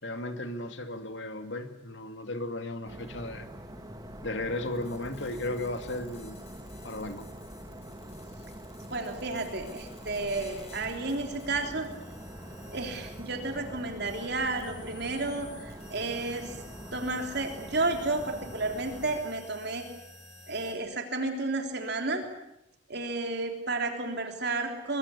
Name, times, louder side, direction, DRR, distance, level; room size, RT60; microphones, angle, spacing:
voice 1, 0.0-3.5 4.2-6.4 6.8-7.3, left 2 dB, 65° left, 8 dB, 2.3 m, -35 dB
sound 1, 2.9-19.2, right 1 dB, 20° right, 1.9 m, -45 dB
sound 2, 4.4-20.7, left 2 dB, 30° left, 6.2 m, -52 dB
voice 2, 8.9-11.9 12.7-16.5 16.9-19.8 20.5-22.2 22.9-25.0, right 2 dB, 55° right, 4 dB, 3.4 m, -32 dB
23.0 x 23.0 x 8.4 m, 0.84 s
head